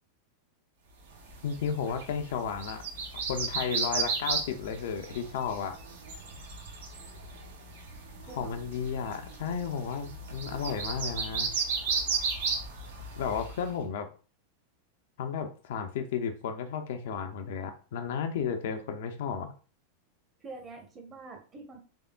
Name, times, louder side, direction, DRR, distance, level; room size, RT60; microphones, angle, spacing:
sound 1, 1.2-13.7, right 4 dB, 60° right, 0.9 m, -35 dB
voice 1, 1.4-2.8 3.3-5.8 8.4-11.5 13.2-14.1 15.2-19.5, left 6 dB, 55° left, 7 dB, 0.5 m, -33 dB
voice 2, 8.3-8.6 20.4-21.8, right 3 dB, 20° right, 3 dB, 0.9 m, -45 dB
3.6 x 3.4 x 2.2 m, 0.38 s
figure-of-eight pair, 90°, 0 cm